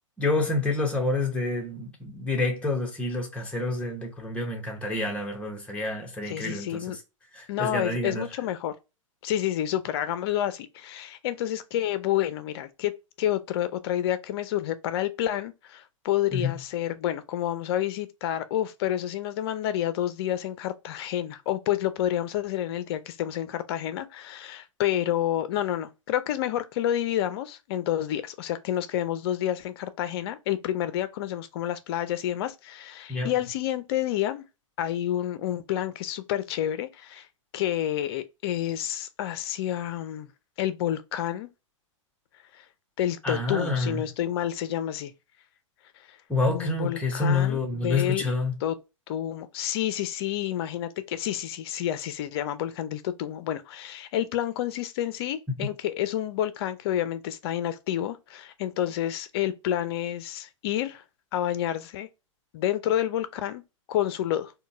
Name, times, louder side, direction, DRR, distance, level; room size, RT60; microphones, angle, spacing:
voice 1, 0.2-7.0 7.3-8.3 16.3-16.5 33.1-33.3 43.2-44.0 46.3-48.5, left 3 dB, 5° left, 0.9 m, -28 dB
voice 2, 6.3-7.0 7.5-8.7 9.2-34.4 34.8-37.3 37.5-40.3 40.6-41.5 42.6-42.7 43.0-45.1 46.1-46.2 46.5-48.3 48.6-48.8 49.1-61.0 61.3-62.1 62.5-63.6 63.9-64.5, left 12 dB, 50° left, 0.5 m, -29 dB
3.7 x 2.2 x 2.5 m
hypercardioid pair, 120°, 17 cm